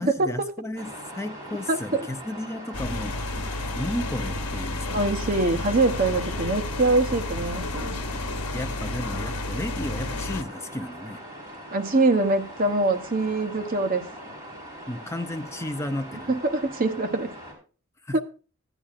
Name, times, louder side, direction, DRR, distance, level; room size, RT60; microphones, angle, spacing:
voice 1, 0.0-3.5 3.8-5.1 8.2-11.2 14.9-16.3 18.0-18.2, left 1 dB, 10° left, 0.5 m, -33 dB
sound 1, 0.8-17.5, equal, 15° right, 4.3 m, -41 dB
voice 2, 1.7-2.1 4.9-8.0 11.7-14.1 16.3-17.3 18.1-18.2, right 2 dB, 40° right, 0.8 m, -24 dB
sound 2, 2.7-10.4, left 2 dB, 85° left, 1.0 m, -31 dB
15.5 x 10.0 x 2.4 m
head